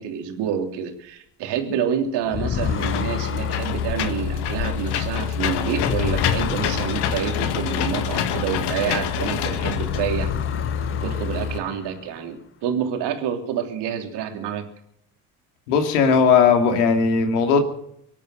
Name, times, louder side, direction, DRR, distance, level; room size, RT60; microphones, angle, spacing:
voice 1, 0.0-10.3 11.0-12.4 12.6-14.7, right 8 dB, 65° right, 4 dB, 3.2 m, -28 dB
sound 1, 2.2-9.2 9.5-12.2, left 9 dB, 30° left, 0.7 m, -31 dB
Engine / Mechanisms, 2.6-11.6, left 8 dB, 60° left, 1.7 m, -26 dB
voice 2, 15.7-17.6, left 6 dB, 80° left, 5 dB, 2.6 m, -17 dB
24.5 x 8.7 x 6.6 m, 0.74 s
hypercardioid pair, 65°, 45 cm